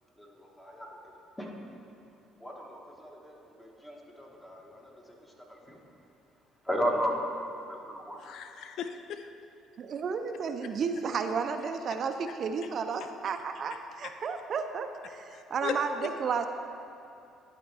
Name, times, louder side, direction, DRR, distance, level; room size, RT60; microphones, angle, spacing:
voice 1, 0.2-1.0 1.4-1.5 2.4-4.8 5.5-5.8 6.7-7.2 7.7-8.2, equal, 10° left, -1 dB, 1.3 m, -35 dB
voice 2, 8.2-9.3 15.3-15.8, left 9 dB, 65° left, 8 dB, 0.3 m, -37 dB
voice 3, 9.8-16.5, right 5 dB, 55° right, 7 dB, 0.4 m, -32 dB
11.5 x 4.4 x 3.3 m, 2.6 s
supercardioid pair, 70°, 0 cm